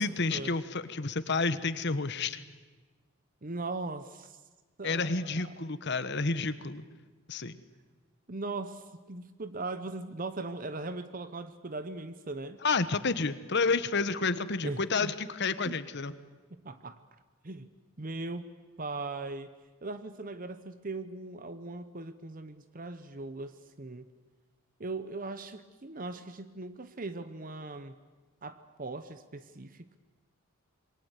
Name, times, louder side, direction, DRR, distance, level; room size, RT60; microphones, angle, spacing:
voice 1, 0.0-2.4 4.8-6.8 7.3-7.6 12.6-16.1, left 4 dB, 55° left, 13 dB, 1.2 m, -30 dB
voice 2, 3.4-4.4 4.8-5.5 8.3-12.6 14.6-15.1 15.6-15.8 16.6-17.0 17.4-17.7 18.0-18.5 18.8-19.5 19.8-24.1 24.8-28.0 28.4-30.0, right 3 dB, 40° right, 11 dB, 0.9 m, -39 dB
27.5 x 22.5 x 8.3 m, 1.3 s
head